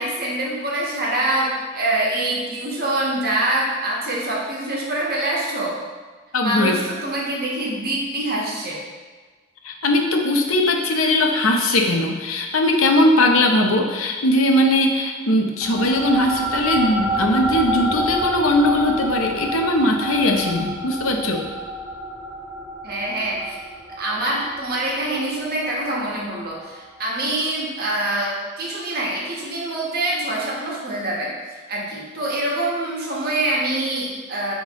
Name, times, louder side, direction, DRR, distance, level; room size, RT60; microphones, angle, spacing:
voice 1, 0.0-5.7 6.4-8.8 22.8-23.6 24.0-31.3 31.7-34.5, right 1 dB, 50° right, -3 dB, 1.4 m, -25 dB
voice 2, 6.3-6.7 9.6-21.5, left 1 dB, 75° left, 2 dB, 0.8 m, -19 dB
sound 1, 15.6-26.4, equal, 5° right, 1.1 m, -28 dB
9.1 x 3.6 x 3.1 m, 1.4 s
head